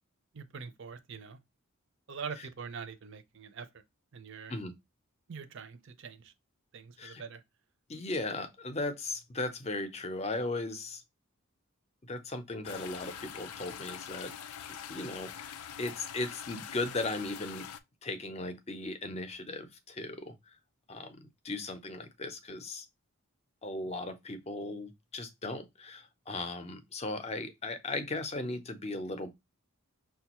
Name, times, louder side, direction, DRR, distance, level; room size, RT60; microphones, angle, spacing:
voice 1, 0.3-1.4 2.1-3.8 4.1-4.5 5.3-6.3 6.7-7.4, right 6 dB, 55° right, 0.5 m, -44 dB
voice 2, 7.9-11.0 12.1-14.3 14.9-17.7 18.0-20.3 20.9-22.9 23.6-29.3, left 2 dB, 30° left, 0.6 m, -37 dB
sound 1, 12.6-17.8, left 8 dB, 80° left, 0.4 m, -44 dB
5.9 x 2.3 x 2.9 m
head